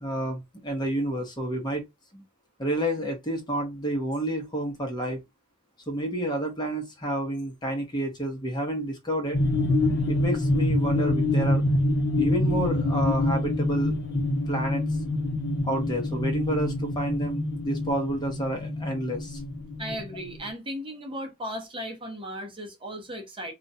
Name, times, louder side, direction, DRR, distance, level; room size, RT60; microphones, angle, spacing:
voice 1, 0.0-1.9 2.1-2.2 2.6-5.2 5.9-9.4 10.1-11.6 12.2-14.0 14.5-14.8 15.6-19.4, right 1 dB, 20° left, 0.9 m, -29 dB
sound 1, 9.3-20.5, left 1 dB, 55° left, 0.8 m, -26 dB
voice 2, 19.8-23.5, equal, 25° right, 0.8 m, -36 dB
2.4 x 2.2 x 4.0 m
head